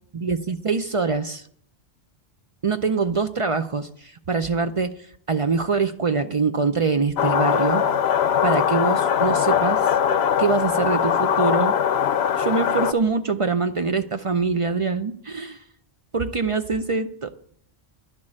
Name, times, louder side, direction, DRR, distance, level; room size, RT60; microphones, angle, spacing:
voice 1, 0.1-1.4 2.6-7.8 8.4-9.9 10.4-11.8 12.3-15.6 16.1-17.3, right 4 dB, 45° right, 9 dB, 0.4 m, -24 dB
sound 1, 7.2-12.9, left 8 dB, 75° left, 0.9 m, -21 dB
11.0 x 6.3 x 8.7 m, 0.64 s
omnidirectional pair, 1.1 m